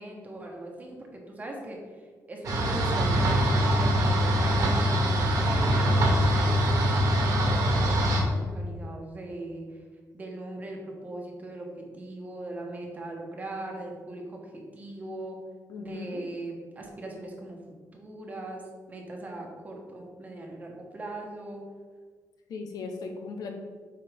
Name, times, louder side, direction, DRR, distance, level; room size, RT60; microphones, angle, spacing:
voice 1, 0.0-2.0 2.3-6.2 6.6-9.8 10.1-15.4 15.8-17.6 17.9-18.6 18.9-21.6, right 1 dB, 25° right, 0 dB, 1.2 m, -40 dB
sound 1, 2.4-8.2, equal, 65° right, 1.6 m, -23 dB
voice 2, 15.7-16.2 22.5-23.5, left 4 dB, 75° left, 3 dB, 1.0 m, -37 dB
8.2 x 4.7 x 3.6 m, 1.5 s
wide cardioid pair, 170°, 7 cm